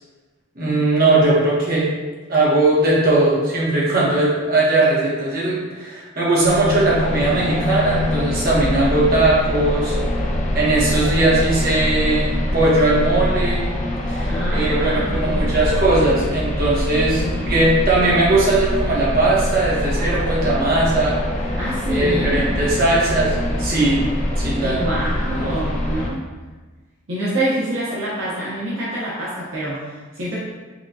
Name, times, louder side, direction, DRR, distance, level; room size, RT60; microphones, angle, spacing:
voice 1, 0.6-1.9 2.3-10.0 10.5-13.7 14.1-21.2 21.9-24.0 24.3-24.8, right 2 dB, 45° right, -6 dB, 1.1 m, -19 dB
sound 1, 6.4-26.1, left 1 dB, 35° left, 0.5 m, -24 dB
voice 2, 14.3-15.5 17.0-17.5 21.6-22.4 24.6-26.2 27.1-30.4, right 1 dB, 80° right, -8 dB, 0.8 m, -26 dB
5.4 x 2.3 x 2.7 m, 1.3 s
head